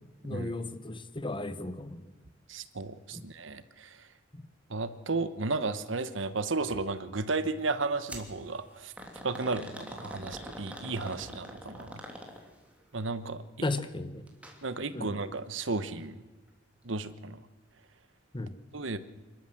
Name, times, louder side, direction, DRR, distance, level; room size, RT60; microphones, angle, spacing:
voice 1, 0.2-2.1 3.1-3.2 4.3-4.4 13.6-14.3 14.9-15.2 18.3-18.6, left 2 dB, 25° left, 12 dB, 1.2 m, -35 dB
voice 2, 2.5-3.9 4.7-8.9 9.2-12.0 12.9-13.4 14.6-16.2 16.8-17.4 18.7-19.0, right 3 dB, 75° right, 12 dB, 1.2 m, -33 dB
sound 1, 8.1-8.3 9.0-12.7 14.3-14.6 14.9-15.0 15.9-16.0, equal, 5° right, 3.0 m, -43 dB
27.0 x 12.5 x 7.8 m, 1.2 s
head